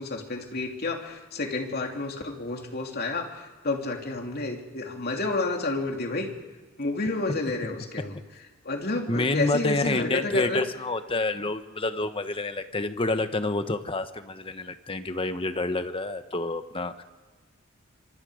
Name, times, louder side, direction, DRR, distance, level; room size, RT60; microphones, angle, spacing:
voice 1, 0.0-6.3 6.8-8.2 8.6-10.6, left 3 dB, 50° left, 2 dB, 3.0 m, -30 dB
voice 2, 9.1-17.0, left 2 dB, 25° left, 10 dB, 1.1 m, -28 dB
26.5 x 25.0 x 5.1 m, 1.4 s
head